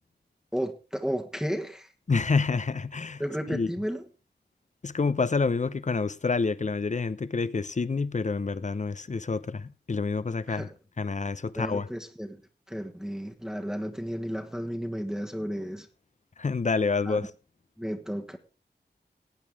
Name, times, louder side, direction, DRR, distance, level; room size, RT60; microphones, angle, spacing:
voice 1, 0.5-1.9 3.2-4.0 10.5-10.7 11.6-12.4 12.7-15.9 17.0-17.2 17.8-18.4, equal, 5° right, 1.4 m, -33 dB
voice 2, 2.1-3.2 3.5-3.7 4.8-10.7 11.0-11.9 16.4-17.3, left 4 dB, 45° left, 0.8 m, -28 dB
18.5 x 8.4 x 3.6 m
wide cardioid pair, 70°, 18 cm